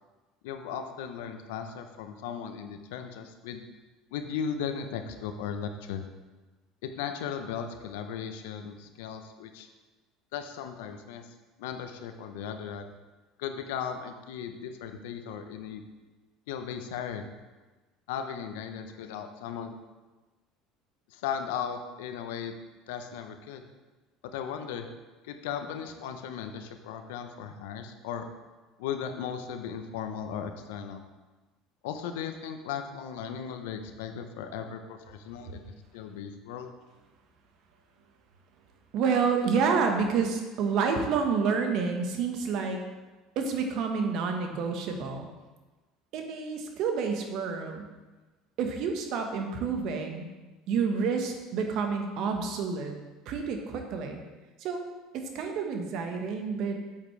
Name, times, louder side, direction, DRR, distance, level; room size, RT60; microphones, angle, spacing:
voice 1, 0.4-3.6 4.1-6.1 6.8-9.7 10.3-11.3 11.6-12.9 13.4-15.8 16.5-17.3 18.1-19.8 21.1-22.5 22.9-23.7 24.3-24.9 25.2-28.2 28.8-31.0 31.8-36.7, left 7 dB, 75° left, 6 dB, 0.8 m, -37 dB
voice 2, 38.9-42.8 43.3-45.3 46.1-47.9 48.6-50.3 50.7-52.9 53.2-54.2 54.6-54.8 55.1-56.8, right 5 dB, 60° right, 4 dB, 1.3 m, -29 dB
8.7 x 7.4 x 3.3 m, 1.2 s
hypercardioid pair, 75°, 0 cm